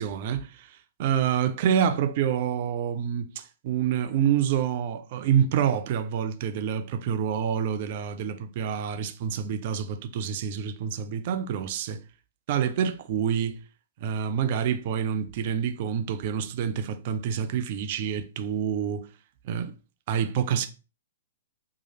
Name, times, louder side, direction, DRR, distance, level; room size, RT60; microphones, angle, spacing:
voice 1, 0.0-12.0 12.5-13.6 14.0-19.1 19.4-19.7 20.1-20.7, right 8 dB, 45° right, 0.4 m, -27 dB
2.9 x 2.3 x 2.8 m
figure-of-eight pair, 110°, 0 cm